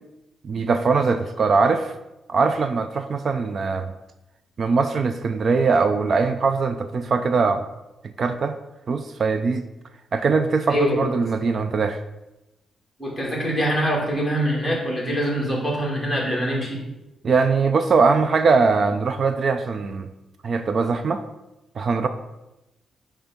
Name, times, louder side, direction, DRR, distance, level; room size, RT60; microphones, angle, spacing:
voice 1, 0.4-1.9 2.3-3.9 4.6-7.6 8.2-8.6 8.9-9.6 10.1-12.0 17.2-20.1 20.4-21.2 21.8-22.1, right 4 dB, 45° right, 9 dB, 0.4 m, -21 dB
voice 2, 10.7-11.1 13.0-16.8, equal, ahead, -4 dB, 2.4 m, -24 dB
8.7 x 3.5 x 5.7 m, 0.99 s
wide cardioid pair, 140°, 0 cm